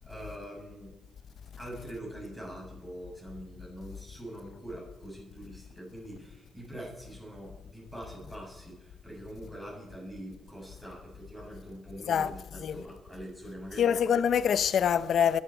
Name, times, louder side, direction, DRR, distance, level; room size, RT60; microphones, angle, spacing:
voice 1, 0.0-1.0 1.6-13.9, right 1 dB, 10° right, 7.2 m, -44 dB
voice 2, 12.1-12.8 13.8-15.4, left 8 dB, 65° left, 0.7 m, -25 dB
23.0 x 11.5 x 4.5 m
wide cardioid pair, 145°, 0 cm